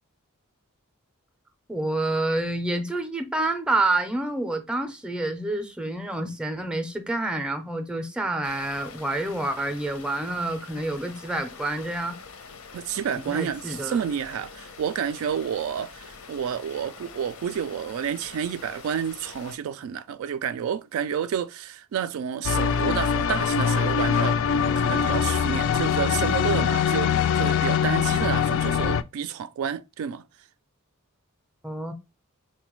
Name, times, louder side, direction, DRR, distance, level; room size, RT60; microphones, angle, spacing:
voice 1, 1.7-12.2 13.3-14.0 31.6-31.9, right 2 dB, 5° right, 0.5 m, -28 dB
sound 1, 8.4-19.6, left 5 dB, 85° left, 0.7 m, -45 dB
voice 2, 12.7-30.2, right 8 dB, 70° right, 0.3 m, -30 dB
sound 2, 22.4-29.0, left 7 dB, 65° left, 0.3 m, -23 dB
4.0 x 2.2 x 3.0 m
head